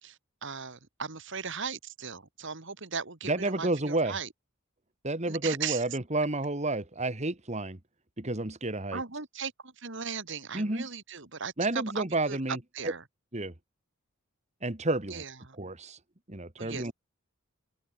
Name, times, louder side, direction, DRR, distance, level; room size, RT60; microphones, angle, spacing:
voice 1, 0.0-4.3 5.3-5.8 8.9-13.0 15.1-15.6 16.6-16.9, right 6 dB, 60° right, 2.2 m, -38 dB
voice 2, 3.3-4.2 5.0-7.8 8.2-9.0 10.5-10.9 11.6-12.6 12.8-12.9 13.3-13.5 14.6-15.2 15.6-16.0 16.3-16.9, right 2 dB, 30° right, 1.9 m, -30 dB
open air
head